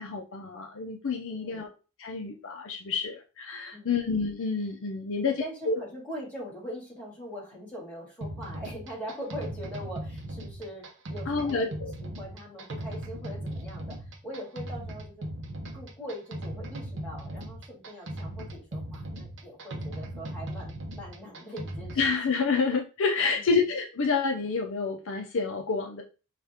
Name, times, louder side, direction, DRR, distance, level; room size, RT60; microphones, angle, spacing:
voice 1, 0.0-1.7 2.0-5.3 5.7-5.8 11.3-11.9 22.0-26.0, left 4 dB, 60° left, 3 dB, 0.6 m, -28 dB
voice 2, 1.3-1.7 3.7-4.0 5.2-11.7 12.0-15.3 15.7-22.1 23.3-23.6, equal, 5° left, -5 dB, 2.1 m, -42 dB
sound 1, 8.2-22.1, right 1 dB, 55° right, 0.7 m, -38 dB
5.7 x 2.4 x 3.5 m, 0.34 s
head